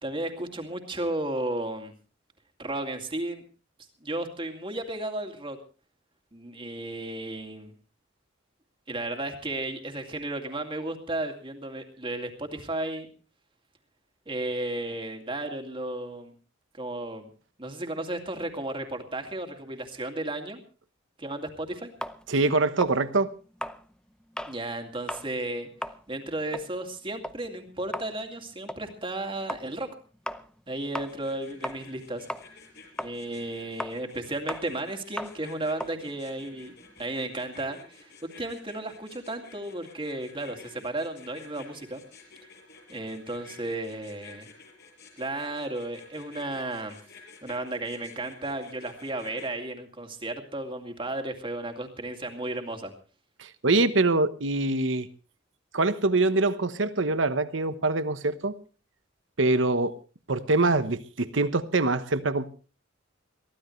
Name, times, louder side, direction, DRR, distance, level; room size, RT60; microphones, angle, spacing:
voice 1, 0.0-1.9 2.6-3.4 4.0-5.6 6.3-7.7 8.9-13.1 14.3-16.3 16.7-17.3 17.6-20.6 21.2-21.9 24.4-25.7 26.1-29.9 30.7-32.3 33.0-42.0 42.9-44.5 45.2-47.0 47.4-52.9, right 2 dB, 25° right, 2.4 m, -34 dB
sound 1, 22.0-24.6 25.0-25.3 25.6-32.0 32.3-37.1, left 1 dB, 5° left, 0.7 m, -38 dB
voice 2, 22.3-23.3 53.4-55.1 55.7-58.6 59.4-59.9 60.3-62.5, right 2 dB, 70° right, 1.1 m, -24 dB
sound 2, 31.1-49.5, left 5 dB, 60° left, 5.8 m, -51 dB
23.0 x 15.5 x 3.2 m
head